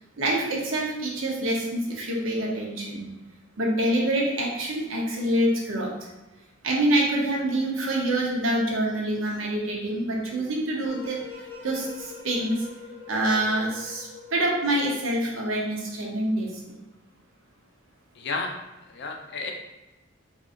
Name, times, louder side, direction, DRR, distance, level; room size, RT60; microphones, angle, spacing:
voice 1, 0.2-3.1 3.6-6.1 6.6-11.2 11.6-12.7 13.1-16.8, right 1 dB, 75° right, -1 dB, 0.8 m, -26 dB
sound 1, 10.8-15.2, left 5 dB, 10° left, 0.8 m, -43 dB
voice 2, 18.2-18.5 18.9-19.5, left 3 dB, 55° left, 2 dB, 0.5 m, -31 dB
3.7 x 2.8 x 2.4 m, 1.1 s
head